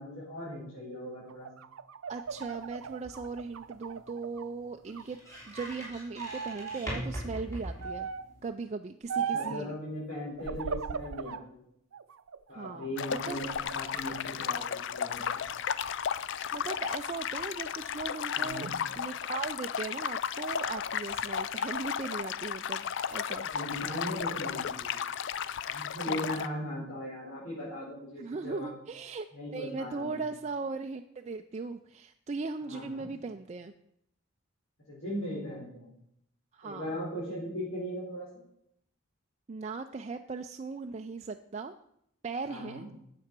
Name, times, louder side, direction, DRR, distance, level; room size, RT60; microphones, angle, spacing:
voice 1, 0.0-1.5 9.3-11.6 12.5-15.5 18.4-18.7 23.4-25.0 25.7-28.7 29.3-30.2 32.6-33.1 34.9-35.9 36.6-38.4 42.5-42.9, equal, 80° left, -7 dB, 4.3 m, -39 dB
sound 1, 1.3-4.5 4.9-5.8 6.2-6.8 7.8-8.3 9.1-9.6 10.4-11.4 11.9-12.9 13.3-14.0, right 6 dB, 85° right, 0.5 m, -38 dB
voice 2, 2.1-5.2 5.5-8.1 8.4-9.8 12.5-13.4 16.5-18.7 19.0-23.5 26.1-26.3 28.2-29.3 29.5-33.7 36.5-36.9 39.5-41.7 42.2-42.9, right 4 dB, 30° right, 5 dB, 0.4 m, -38 dB
sound 2, 2.3-8.5, equal, 15° left, 3.6 m, -43 dB
sound 3, 13.0-26.5, left 8 dB, 60° left, 0.4 m, -34 dB
9.6 x 7.7 x 6.0 m, 0.75 s
head